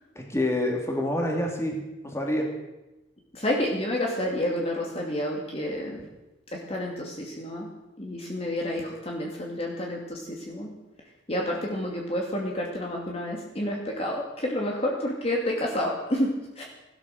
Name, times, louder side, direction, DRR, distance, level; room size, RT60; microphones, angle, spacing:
voice 1, 0.1-2.5, left 1 dB, 15° left, 1 dB, 2.8 m, -27 dB
voice 2, 3.3-6.1 6.5-7.7 8.0-10.7 11.3-16.3 16.6-16.7, left 1 dB, 30° left, -1 dB, 2.4 m, -29 dB
17.5 x 12.0 x 6.6 m, 0.99 s
head